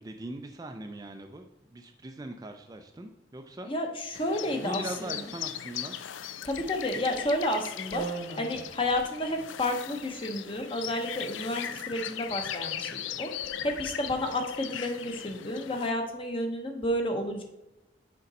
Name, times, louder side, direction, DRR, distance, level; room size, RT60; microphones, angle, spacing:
voice 1, 0.0-3.7 4.4-6.0, right 1 dB, 20° right, 5 dB, 0.4 m, -41 dB
voice 2, 3.7-5.2 6.4-8.1 8.4-13.3 13.6-17.4, left 1 dB, 30° left, 4 dB, 0.9 m, -31 dB
sound 1, 4.1-15.9, left 10 dB, 90° left, 0.4 m, -39 dB
sound 2, 7.1-7.3 7.9-9.0 10.0-10.5 11.0-11.1 11.4-11.9 12.1-12.3 12.8-13.5, right 4 dB, 60° right, 1.1 m, -41 dB
6.6 x 5.2 x 4.1 m, 0.98 s
head